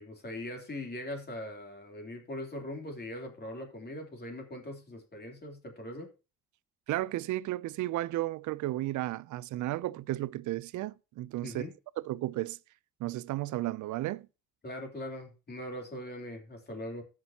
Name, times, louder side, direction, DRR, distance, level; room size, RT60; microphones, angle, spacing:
voice 1, 0.0-6.1 11.4-11.7 14.6-17.0, left 1 dB, 35° left, 3.2 m, -41 dB
voice 2, 6.9-11.7 12.0-12.6 13.0-14.3, right 16 dB, 75° right, 0.5 m, -33 dB
16.5 x 6.1 x 2.9 m
cardioid pair, 90°, 30 cm